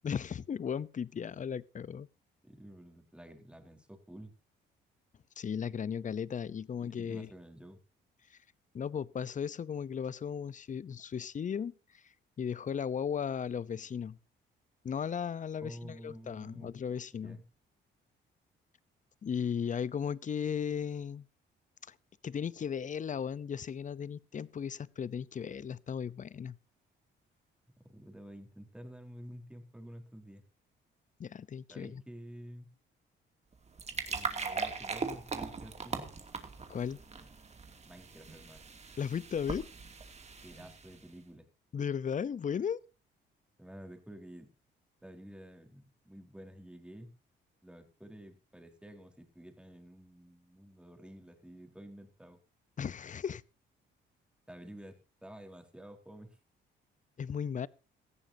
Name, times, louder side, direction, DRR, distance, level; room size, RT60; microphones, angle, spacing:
voice 1, 0.0-2.1 5.4-7.3 8.7-11.7 12.4-14.2 14.8-17.4 19.2-21.2 21.9-22.0 22.2-26.6 31.2-32.0 36.7-37.0 39.0-39.7 41.7-42.8 52.8-53.4 57.2-57.7, left 7 dB, 40° left, 0.8 m, -36 dB
voice 2, 2.4-4.3 6.8-7.8 15.6-16.7 17.2-17.4 27.9-30.4 31.7-32.7 34.1-36.1 37.8-38.6 40.4-41.5 43.6-44.5 45.0-47.1 47.6-52.4 54.5-56.4, equal, 5° right, 4.1 m, -50 dB
sound 1, 33.5-41.1, right 4 dB, 35° right, 2.7 m, -40 dB
18.0 x 14.5 x 2.8 m
cardioid pair, 90°, 20 cm